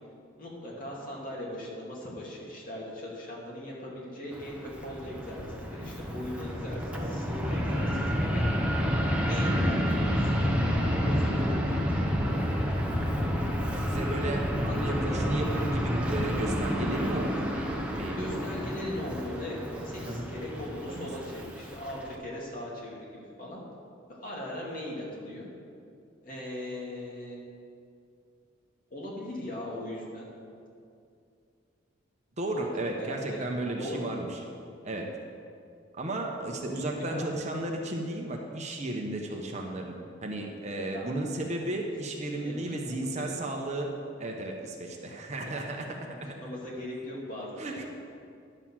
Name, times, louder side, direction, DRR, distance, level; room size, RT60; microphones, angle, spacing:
voice 1, 0.4-8.4 9.2-12.6 14.4-14.8 15.0-15.2 18.2-23.6 24.1-25.4 26.2-27.4 28.9-30.3 32.5-32.7 33.0-33.5 33.8-34.1 36.6-37.3 40.8-41.0 42.3-43.4 45.4-47.5, left 1 dB, 45° left, -4 dB, 2.7 m, -39 dB
Fixed-wing aircraft airplane, 4.3-22.1, equal, 5° right, 0.9 m, -29 dB
voice 2, 13.9-18.4 20.0-20.3 20.9-21.1 32.4-34.3 34.8-35.1 36.0-39.9 40.2-43.9 44.2-46.0 47.6-47.8, right 2 dB, 35° right, 1 dB, 1.0 m, -34 dB
11.0 x 6.7 x 7.5 m, 2.4 s
head